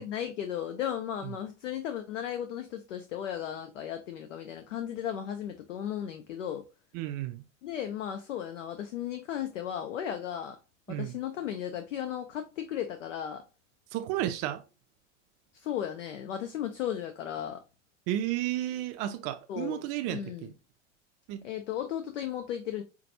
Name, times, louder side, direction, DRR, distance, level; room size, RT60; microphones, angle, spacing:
voice 1, 0.0-6.7 7.6-10.6 10.9-13.4 15.5-17.6 19.5-20.5 21.4-22.8, left 10 dB, 70° left, 0.7 m, -35 dB
voice 2, 6.9-7.4 10.9-11.2 13.9-14.6 18.1-20.5 21.3-21.4, right 13 dB, 40° right, 0.5 m, -32 dB
5.7 x 2.3 x 2.7 m
figure-of-eight pair, 85°, 38 cm